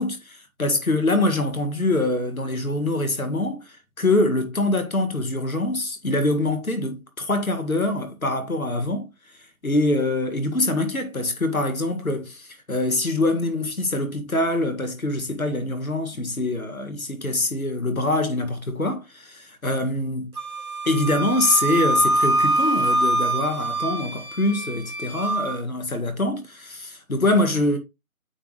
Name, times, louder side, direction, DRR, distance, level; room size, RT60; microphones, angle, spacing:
voice 1, 0.0-3.6 4.0-9.1 9.6-20.3 20.9-27.8, left 2 dB, 80° left, 1.9 m, -24 dB
Wind instrument woodwind instrument, 20.4-25.6, right 2 dB, 85° right, 1.8 m, -24 dB
8.6 x 3.4 x 4.0 m
figure-of-eight pair, 165°, 42 cm